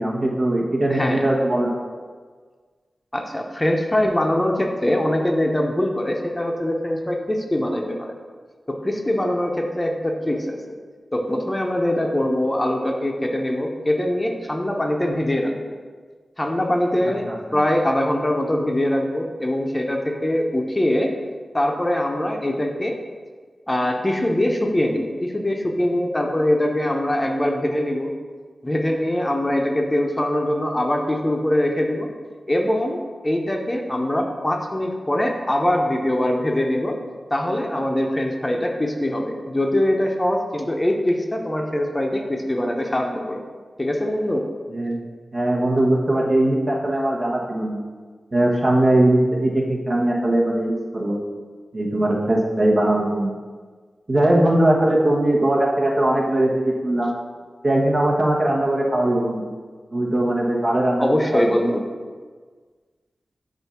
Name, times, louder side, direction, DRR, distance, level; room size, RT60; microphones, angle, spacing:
voice 1, 0.0-1.8 17.3-17.4 44.7-45.0 45.3-47.8 48.3-51.2 51.7-53.3 54.1-57.1 57.6-59.5 59.9-61.1 61.3-61.8, right 1 dB, 55° right, -2 dB, 1.3 m, -20 dB
voice 2, 0.9-1.2 3.1-8.1 8.7-10.8 11.1-15.8 16.4-17.3 17.5-21.1 21.5-23.0 23.7-28.1 28.6-32.1 32.5-37.0 37.3-43.4 43.8-44.4 61.0-61.8, left 1 dB, 20° left, 2 dB, 0.8 m, -22 dB
7.8 x 2.7 x 5.7 m, 1.5 s
cardioid pair, 50°, 0 cm